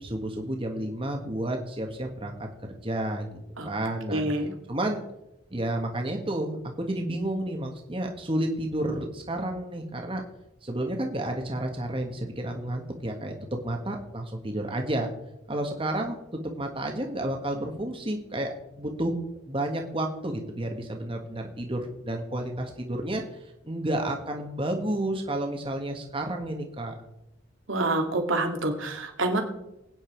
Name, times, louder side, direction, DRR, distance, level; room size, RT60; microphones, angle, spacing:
voice 1, 0.0-2.5 2.8-3.3 3.6-4.2 4.7-5.0 5.5-10.2 10.6-15.1 15.5-16.2 16.4-19.2 19.5-23.2 23.6-26.9, right 1 dB, 25° right, 2 dB, 1.5 m, -31 dB
voice 2, 4.1-4.5 27.7-29.4, right 2 dB, 85° right, 3 dB, 2.6 m, -27 dB
21.5 x 9.3 x 4.6 m, 0.90 s
head